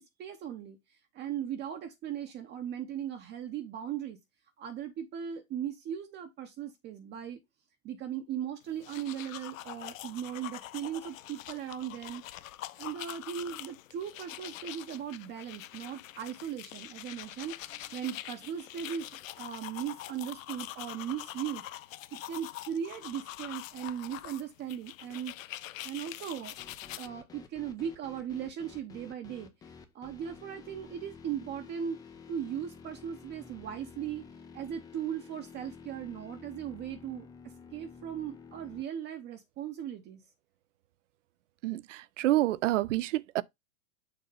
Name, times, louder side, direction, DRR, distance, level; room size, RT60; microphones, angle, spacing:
voice 1, 0.2-0.8 1.1-4.2 4.6-7.4 7.8-12.2 12.8-21.6 22.1-25.6 25.8-26.6 27.0-29.5 29.9-32.0 32.3-34.3 34.5-37.3 37.7-40.2, right 9 dB, 25° right, 0.8 m, -38 dB
teeth brusing, 8.7-27.1, left 14 dB, 65° left, 0.6 m, -44 dB
sound 1, 26.6-38.8, left 5 dB, 10° left, 0.4 m, -51 dB
voice 2, 41.6-43.4, right 15 dB, 60° right, 0.5 m, -28 dB
6.7 x 2.8 x 5.4 m
hypercardioid pair, 120°, 43 cm